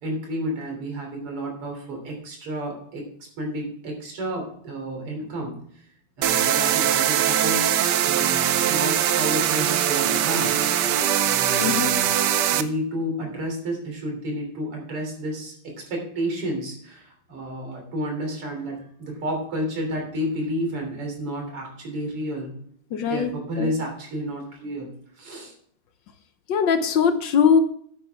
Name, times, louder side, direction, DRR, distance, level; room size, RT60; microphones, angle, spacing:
voice 1, 0.0-3.0 3.4-5.5 6.2-7.7 8.0-10.5 11.2-12.1 12.5-22.6 23.0-25.5, equal, 85° right, 2 dB, 4.1 m, -31 dB
sound 1, 6.2-12.6, right 10 dB, 70° right, 1.1 m, -21 dB
voice 2, 11.6-11.9 22.9-23.3 23.6-23.7 26.5-27.6, left 7 dB, 65° left, 9 dB, 1.4 m, -20 dB
11.0 x 8.9 x 3.5 m, 0.63 s
omnidirectional pair, 2.4 m